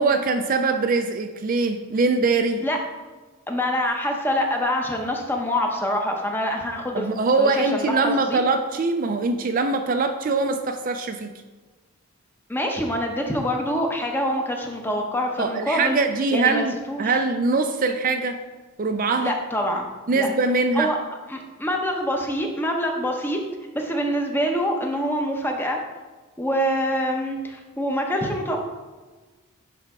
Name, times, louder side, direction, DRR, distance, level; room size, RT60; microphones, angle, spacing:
voice 1, 0.0-2.6 6.9-11.3 15.4-18.4 18.8-19.3 20.1-20.9, right 3 dB, 40° right, 6 dB, 0.4 m, -22 dB
voice 2, 3.5-7.1 7.4-8.4 12.5-16.0 16.3-17.2 19.2-19.9 20.1-20.3 20.7-21.0 21.3-23.4 23.7-25.8 26.4-28.6, equal, 10° left, 2 dB, 0.8 m, -25 dB
10.5 x 3.5 x 4.8 m, 1.3 s
head